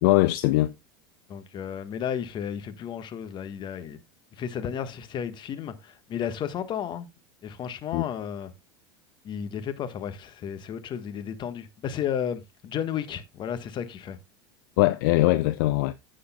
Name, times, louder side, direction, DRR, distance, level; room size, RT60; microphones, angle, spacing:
voice 1, 0.0-0.7 7.9-8.0 14.8-15.9, left 18 dB, 60° left, 0.6 m, -21 dB
voice 2, 1.3-4.0 4.3-7.1 7.4-8.5 9.2-14.2, left 8 dB, 40° left, 1.4 m, -33 dB
15.5 x 6.5 x 2.3 m
hypercardioid pair, 80°, 13 cm